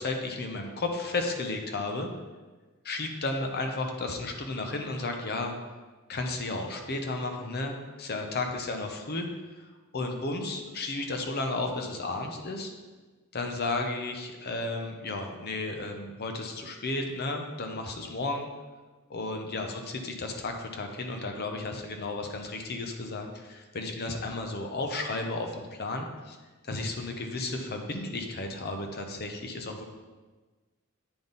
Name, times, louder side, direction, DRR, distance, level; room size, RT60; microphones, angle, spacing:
voice 1, 0.0-2.1 2.8-5.5 6.1-9.3 9.6-9.7 9.9-12.7 13.3-18.5 19.1-19.7 20.0-26.4 26.6-29.8, left 2 dB, 45° left, 4 dB, 0.7 m, -33 dB
8.7 x 3.6 x 4.0 m, 1.3 s
head